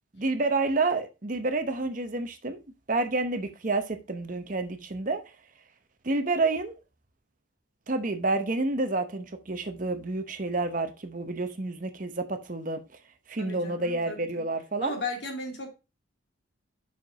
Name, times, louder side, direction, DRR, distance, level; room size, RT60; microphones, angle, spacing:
voice 1, 0.1-2.6 2.9-5.2 6.0-6.8 7.9-12.8 13.3-14.9, right 3 dB, 40° right, 0.8 m, -29 dB
voice 2, 13.4-14.4 14.8-15.7, left 2 dB, 55° left, 2.5 m, -35 dB
5.9 x 5.1 x 5.4 m
head